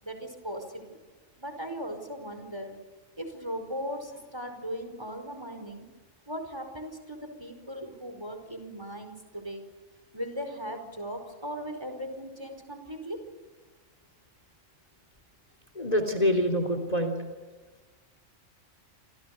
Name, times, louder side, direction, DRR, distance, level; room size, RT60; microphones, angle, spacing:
voice 1, 0.0-1.0 1.4-2.8 3.2-5.9 6.3-9.6 10.1-13.2, equal, 20° right, 6 dB, 4.9 m, -38 dB
voice 2, 15.8-17.1, equal, 30° left, 7 dB, 3.5 m, -26 dB
29.0 x 27.5 x 6.7 m, 1.3 s
omnidirectional pair, 1.4 m